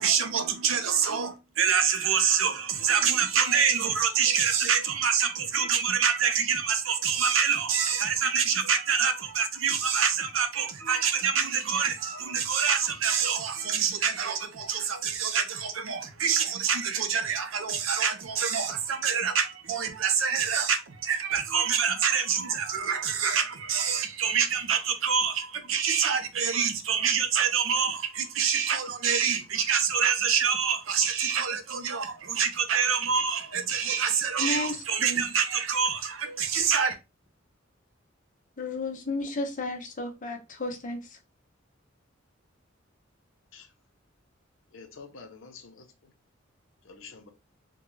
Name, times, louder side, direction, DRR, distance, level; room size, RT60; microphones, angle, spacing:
voice 1, 0.0-37.0, right 7 dB, 85° right, 0.6 m, -26 dB
voice 2, 34.4-35.2 38.6-41.2, left 2 dB, 40° left, 0.8 m, -33 dB
voice 3, 44.7-46.1 46.8-47.3, left 5 dB, 75° left, 0.7 m, -48 dB
3.7 x 2.2 x 3.1 m
head